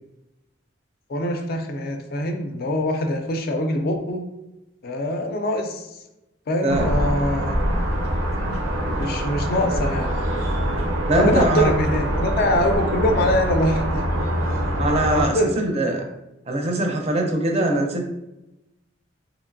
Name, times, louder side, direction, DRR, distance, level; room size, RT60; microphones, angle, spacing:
voice 1, 1.1-4.2 4.8-5.9 6.5-7.6 9.0-10.2 11.1-14.0 15.1-15.5, left 1 dB, 50° left, 4 dB, 0.3 m, -23 dB
sound 1, 6.7-15.3, equal, 85° right, 0.6 m, -24 dB
voice 2, 11.1-11.7 14.8-16.1 16.5-18.0, right 1 dB, 30° right, 2 dB, 0.4 m, -22 dB
2.9 x 2.5 x 2.5 m, 0.92 s
head